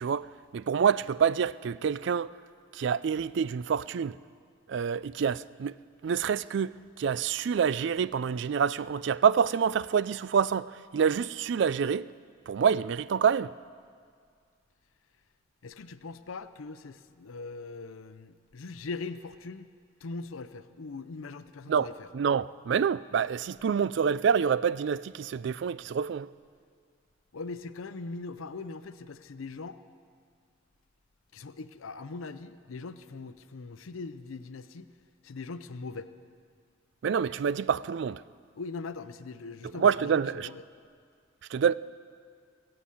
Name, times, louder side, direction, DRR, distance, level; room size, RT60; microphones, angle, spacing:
voice 1, 0.0-2.3 2.7-4.2 4.7-5.7 6.0-12.1 12.5-13.5 21.7-21.9 22.1-26.3 37.0-38.2 39.8-40.5 41.5-41.7, right 7 dB, 60° right, 0.3 m, -27 dB
voice 2, 15.6-19.7 20.0-22.1 27.3-29.8 31.3-34.9 35.2-36.1 38.6-40.6, left 3 dB, 90° left, 0.6 m, -41 dB
20.5 x 7.8 x 8.5 m
head